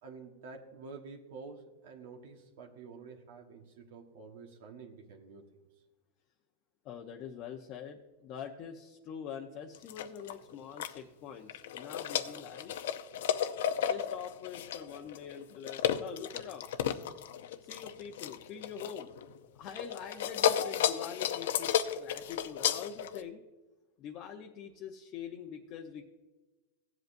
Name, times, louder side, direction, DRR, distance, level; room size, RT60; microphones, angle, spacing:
voice 1, 0.0-5.4, right 4 dB, 70° right, 2 dB, 1.3 m, -49 dB
voice 2, 6.8-12.7 13.9-16.7 17.6-19.1 19.5-23.4 24.0-26.0, left 8 dB, 35° left, 1 dB, 0.8 m, -44 dB
sound 1, 9.7-11.0 11.5-19.4 19.7-23.2, left 10 dB, 75° left, 0.6 m, -33 dB
16.0 x 7.9 x 2.6 m, 1.2 s
supercardioid pair, 145°, 0 cm